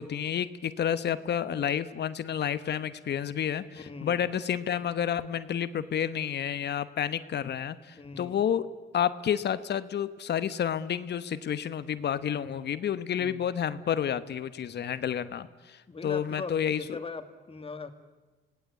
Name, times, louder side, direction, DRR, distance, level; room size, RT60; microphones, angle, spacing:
voice 1, 0.0-8.7 8.9-17.0, left 9 dB, 60° left, 13 dB, 1.1 m, -30 dB
voice 2, 3.7-4.3 8.0-8.4 12.3-12.6 13.2-13.4 15.9-17.9, left 4 dB, 30° left, 8 dB, 2.2 m, -41 dB
26.5 x 18.5 x 8.4 m, 1.2 s
cardioid pair, 90°, 20 cm